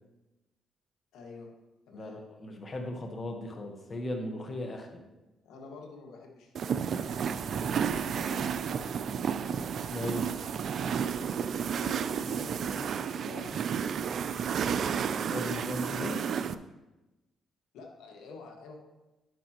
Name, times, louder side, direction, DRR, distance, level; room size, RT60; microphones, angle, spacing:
voice 1, 1.1-1.5 1.9-2.2 5.0-5.1 5.4-11.1 11.7-14.7 17.7-18.8, left 3 dB, 90° left, 0 dB, 1.6 m, -49 dB
voice 2, 1.9-5.0 9.9-10.3 15.2-16.3, left 1 dB, 40° left, 3 dB, 1.2 m, -37 dB
sound 1, 6.5-16.5, right 7 dB, 60° right, 0.4 m, -32 dB
10.0 x 9.1 x 3.0 m, 1.0 s
cardioid pair, 90°, 0 cm